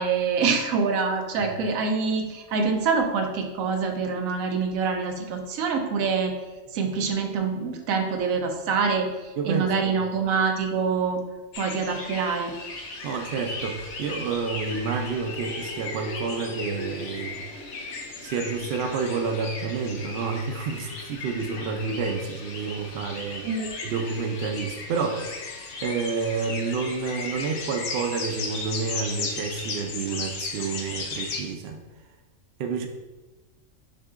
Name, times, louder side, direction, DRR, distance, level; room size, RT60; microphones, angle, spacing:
voice 1, 0.0-6.4 6.7-9.1 9.4-11.2 11.6-12.5 23.4-23.7, right 5 dB, 90° right, 4 dB, 1.0 m, -25 dB
voice 2, 9.4-10.0 13.0-17.5 18.2-23.5 23.8-25.4 25.8-31.8 32.6-32.9, right 5 dB, 65° right, 4 dB, 0.7 m, -29 dB
sound 1, 11.5-31.4, left 3 dB, 65° left, 0.9 m, -36 dB
6.3 x 2.7 x 2.4 m, 1.2 s
omnidirectional pair, 1.4 m